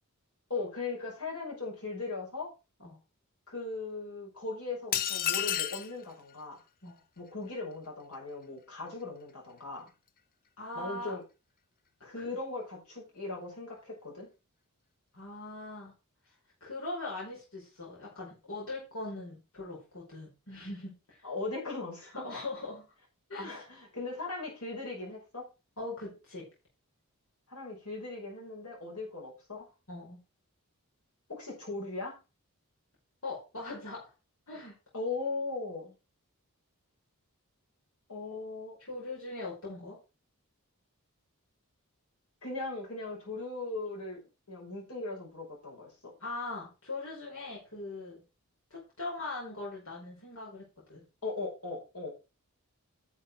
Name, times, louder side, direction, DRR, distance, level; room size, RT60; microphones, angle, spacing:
voice 1, 0.5-2.5 3.5-6.6 7.2-9.9 10.7-11.2 12.0-14.3 21.2-22.3 23.4-25.4 27.5-29.6 31.3-32.2 34.9-35.9 38.1-38.8 42.4-44.2 44.5-46.1 51.2-52.1, left 3 dB, 85° left, -2 dB, 5.7 m, -38 dB
sound 1, 4.9-5.9, left 10 dB, 40° left, 0.5 m, -30 dB
voice 2, 10.6-11.2 12.2-12.3 15.1-15.9 16.6-21.2 22.1-22.9 23.3-23.6 25.8-26.5 29.9-30.2 33.2-34.1 34.5-34.7 38.8-40.0 46.2-48.2 48.7-51.0, left 2 dB, 65° left, -5 dB, 5.0 m, -41 dB
10.5 x 6.7 x 4.6 m, 0.29 s
head